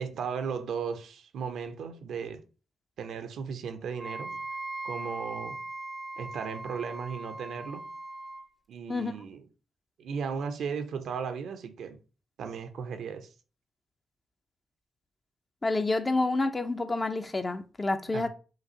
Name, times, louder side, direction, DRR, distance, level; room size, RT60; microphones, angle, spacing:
voice 1, 0.0-2.4 3.0-4.4 4.8-5.6 6.2-7.9 8.7-9.4 10.0-12.0 12.4-13.3 18.1-18.3, right 6 dB, 70° right, 0.6 m, -36 dB
Wind instrument woodwind instrument, 4.0-8.5, right 2 dB, 20° right, 0.6 m, -39 dB
voice 2, 15.6-18.3, left 2 dB, 30° left, 0.7 m, -28 dB
5.8 x 2.6 x 2.9 m
hypercardioid pair, 45°, 0 cm